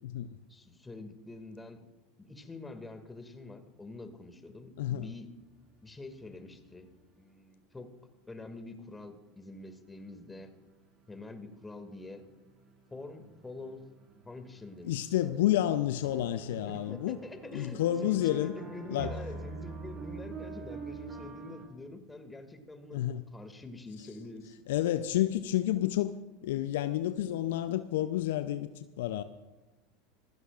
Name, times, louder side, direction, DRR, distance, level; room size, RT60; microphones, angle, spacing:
voice 1, 0.5-1.8 2.2-5.3 5.8-6.9 7.2-7.9 8.3-10.5 11.1-12.3 12.9-13.9 14.2-14.9 15.2-15.4 16.7-24.5, left 2 dB, 15° left, 2.2 m, -46 dB
voice 2, 4.8-5.1 14.8-17.2 17.5-18.6 18.9-19.1 22.9-23.2 24.7-26.2 26.4-29.2, left 13 dB, 70° left, 0.6 m, -30 dB
sound 1, 7.3-7.4 9.8-21.7, right 4 dB, 40° right, 5.0 m, -46 dB
27.0 x 16.0 x 2.5 m
hypercardioid pair, 80°, 0 cm